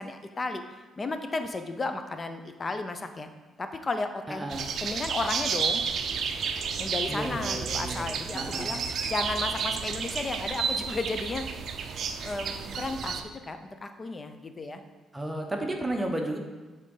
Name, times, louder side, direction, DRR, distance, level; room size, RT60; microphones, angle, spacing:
voice 1, 0.0-3.3 3.6-4.5 4.8-5.8 6.8-8.8 9.1-11.4 12.2-14.8, left 3 dB, 30° left, 7 dB, 0.6 m, -33 dB
voice 2, 4.3-4.7 7.1-8.1 8.3-8.8 15.1-16.4, right 1 dB, 15° right, 2 dB, 0.9 m, -33 dB
sound 1, 4.5-13.2, right 6 dB, 65° right, 0.4 m, -31 dB
7.5 x 3.9 x 3.8 m, 1.3 s
cardioid pair, 90°, 0 cm